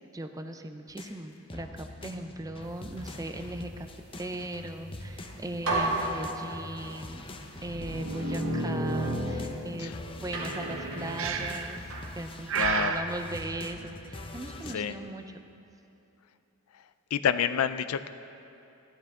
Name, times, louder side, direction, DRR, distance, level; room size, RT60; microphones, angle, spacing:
voice 1, 0.1-3.9 4.2-7.2 7.6-11.8 12.1-15.4, right 1 dB, 15° right, 6 dB, 0.5 m, -38 dB
sound 1, 0.9-9.7 9.9-14.8, left 1 dB, 25° left, 0.7 m, -44 dB
sound 2, 5.1-5.2 5.6-6.9 7.6-9.9 10.3-12.1, right 1 dB, 90° right, 1.9 m, -32 dB
Breathing, 11.2-11.8 12.5-13.1, right 6 dB, 65° right, 0.6 m, -29 dB
voice 2, 12.5-12.9 14.7-14.9 17.1-18.1, left 8 dB, 70° left, 12 dB, 0.4 m, -28 dB
15.5 x 12.0 x 3.6 m, 2.8 s
head